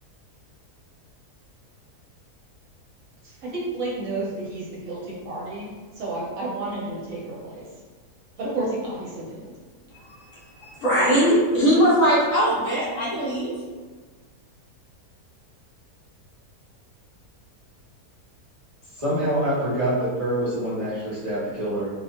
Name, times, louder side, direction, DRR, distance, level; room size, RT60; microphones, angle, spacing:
voice 1, 3.2-7.7 8.4-9.5, right 2 dB, 65° right, -6 dB, 1.0 m, -31 dB
voice 2, 10.6-13.5, equal, 60° left, -6 dB, 1.0 m, -20 dB
voice 3, 19.0-21.9, right 1 dB, 30° right, -13 dB, 0.6 m, -25 dB
2.8 x 2.1 x 2.8 m, 1.4 s
omnidirectional pair, 1.7 m